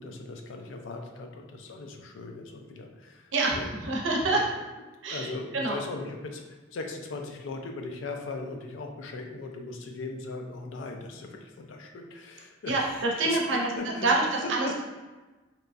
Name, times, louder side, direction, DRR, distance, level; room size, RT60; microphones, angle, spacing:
voice 1, 0.0-3.7 4.3-4.4 5.1-14.8, left 3 dB, 85° left, 3 dB, 0.4 m, -38 dB
voice 2, 3.3-4.4 5.0-5.3 5.5-5.8 12.7-13.7 14.0-14.8, right 2 dB, 85° right, -1 dB, 0.5 m, -26 dB
2.9 x 2.2 x 2.5 m, 1.2 s
head